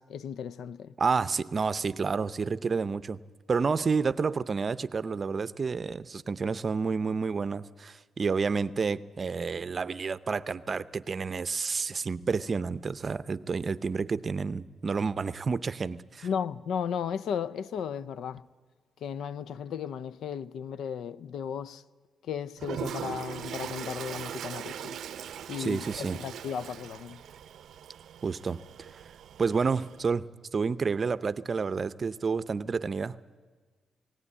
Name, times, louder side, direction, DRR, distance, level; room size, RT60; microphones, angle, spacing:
voice 1, 0.0-0.9 16.2-18.4 19.0-21.8 22.3-25.0 25.5-27.2, left 7 dB, 90° left, 0.5 m, -35 dB
voice 2, 1.0-3.2 3.5-16.3 25.6-26.2 28.2-29.0 29.4-33.2, right 5 dB, 35° right, 0.6 m, -30 dB
Toilet flush, 22.6-30.1, right 9 dB, 80° right, 0.5 m, -40 dB
18.0 x 18.0 x 9.8 m
cardioid pair, 125°, 0 cm